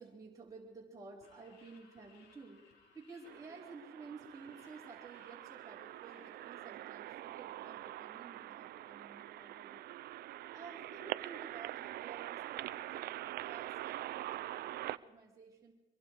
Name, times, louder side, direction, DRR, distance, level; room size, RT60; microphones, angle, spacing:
voice 1, 0.0-9.8 10.5-15.7, right 4 dB, 20° right, -4 dB, 4.2 m, -53 dB
sound 1, 1.2-6.7, left 5 dB, 85° left, 4.8 m, -66 dB
sound 2, 3.3-15.0, right 14 dB, 65° right, 0.6 m, -44 dB
24.0 x 23.0 x 4.8 m, 1.1 s
cardioid pair, 110°, 17 cm